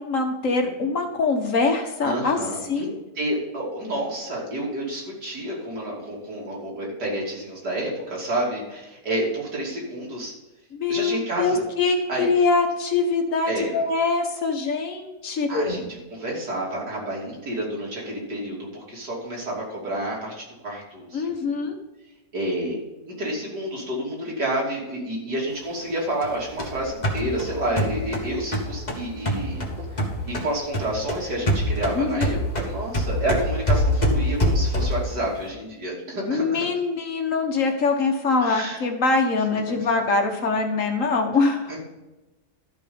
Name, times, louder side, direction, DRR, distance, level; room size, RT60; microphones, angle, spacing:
voice 1, 0.0-2.4 2.7-2.9 10.7-15.9 21.1-21.8 32.0-32.4 36.3-41.7, left 4 dB, 55° left, 3 dB, 1.8 m, -23 dB
voice 2, 2.0-2.9 3.2-10.3 10.9-11.6 12.1-12.3 13.5-13.8 15.5-21.5 22.3-22.8 23.1-29.6 30.2-36.6 38.4-38.8 39.8-39.9 41.7-41.8, right 1 dB, 85° right, -4 dB, 3.7 m, -29 dB
sound 1, 26.2-30.5 30.7-35.1, equal, 25° left, 1.6 m, -24 dB
12.5 x 5.5 x 5.4 m, 1.1 s
omnidirectional pair, 1.7 m